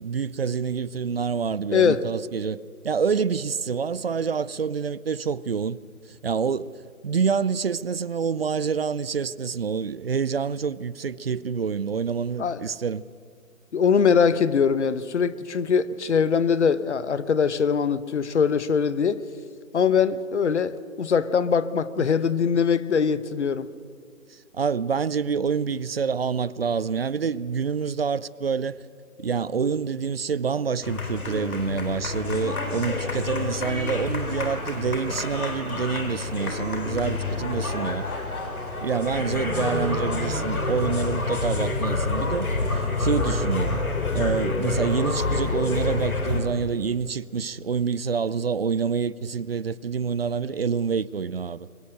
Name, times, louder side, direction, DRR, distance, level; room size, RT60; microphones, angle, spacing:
voice 1, 0.0-2.6 2.8-5.8 6.2-6.8 7.0-13.0 24.3-28.8 29.2-38.1 38.8-42.5 43.0-43.8 44.1-51.7, right 6 dB, 45° right, 0.5 m, -27 dB
voice 2, 1.7-2.1 12.4-12.6 13.7-19.3 19.7-23.7, left 6 dB, 55° left, 1.0 m, -22 dB
sound 1, 30.8-46.4, left 3 dB, 80° left, 4.1 m, -28 dB
24.0 x 16.5 x 7.7 m
figure-of-eight pair, 155°, 42 cm